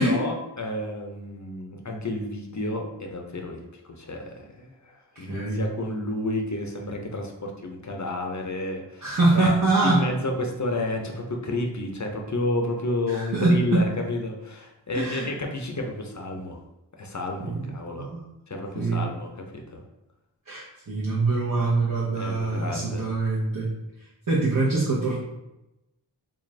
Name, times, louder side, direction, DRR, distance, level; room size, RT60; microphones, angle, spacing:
voice 1, 0.0-9.5 9.8-16.6 17.0-18.1 18.5-19.8 22.1-23.1, left 2 dB, 45° left, 2 dB, 0.5 m, -31 dB
voice 2, 5.2-5.6 9.0-10.1 13.1-13.9 14.9-15.3 17.4-18.2 18.7-19.1 20.5-23.7 24.0-25.2, right 2 dB, 50° right, -7 dB, 0.8 m, -24 dB
3.7 x 2.5 x 3.1 m, 0.93 s
wide cardioid pair, 55°, 43 cm